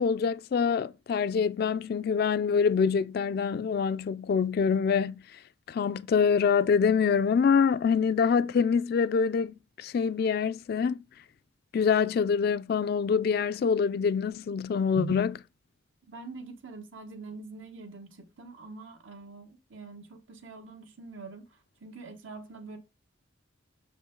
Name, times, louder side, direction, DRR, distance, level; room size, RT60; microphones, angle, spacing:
voice 1, 0.0-5.4 5.7-11.0 11.7-15.3, left 6 dB, 50° left, 0.3 m, -25 dB
voice 2, 16.1-21.5 21.8-22.8, right 4 dB, 85° right, 1.3 m, -43 dB
6.6 x 5.0 x 3.8 m
head